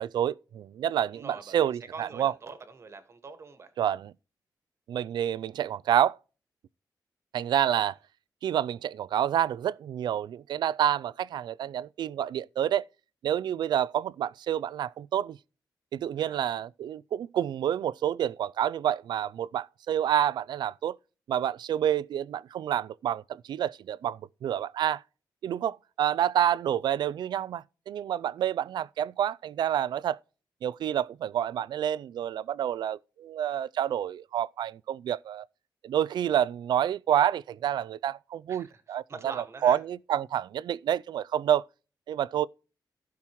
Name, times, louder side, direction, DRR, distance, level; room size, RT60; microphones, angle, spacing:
voice 1, 0.0-2.3 3.8-4.1 4.9-6.2 7.3-8.0 8.4-12.8 13.2-15.4 15.9-21.0 21.3-25.0 25.4-30.2 30.6-35.5 35.8-39.0 39.6-41.6 42.1-42.5, right 10 dB, 80° right, 0.3 m, -28 dB
voice 2, 1.0-3.7 16.2-16.5 38.5-39.8, right 4 dB, 40° right, 1.5 m, -44 dB
15.5 x 5.9 x 3.0 m
wide cardioid pair, 170°, 7 cm